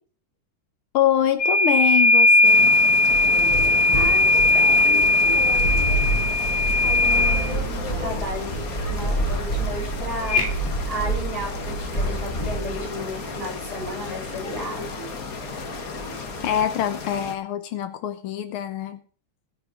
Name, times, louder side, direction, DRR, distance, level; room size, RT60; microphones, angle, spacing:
voice 1, 0.9-2.7 16.4-19.0, left 11 dB, 90° left, 9 dB, 1.8 m, -24 dB
sound 1, 1.4-7.5 10.3-10.5, left 2 dB, 30° left, 2.5 m, -18 dB
sound 2, 2.4-17.4, left 5 dB, 45° left, 1.8 m, -35 dB
sound 3, 3.1-16.6, right 1 dB, 15° left, 7.1 m, -29 dB
voice 2, 3.9-5.0 5.3-5.8 6.8-14.9, equal, 25° right, 0 dB, 7.1 m, -34 dB
20.0 x 6.9 x 5.0 m, 0.41 s
omnidirectional pair, 2.3 m